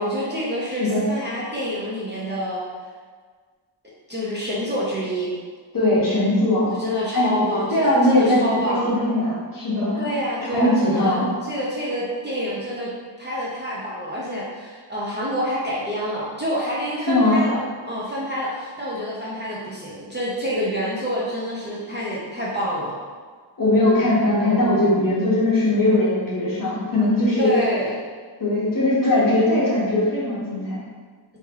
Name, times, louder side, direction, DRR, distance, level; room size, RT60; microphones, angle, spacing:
voice 1, 0.0-2.6 4.1-5.3 6.7-8.9 10.0-12.9 13.2-23.0 27.4-27.9, equal, 20° right, -7 dB, 0.6 m, -27 dB
voice 2, 0.7-1.1 5.7-6.7 7.1-10.1 10.5-11.3 17.1-17.4 23.6-27.5 28.4-30.8, left 1 dB, 45° left, -7 dB, 1.1 m, -20 dB
3.1 x 2.8 x 3.7 m, 1.5 s
wide cardioid pair, 145°, 48 cm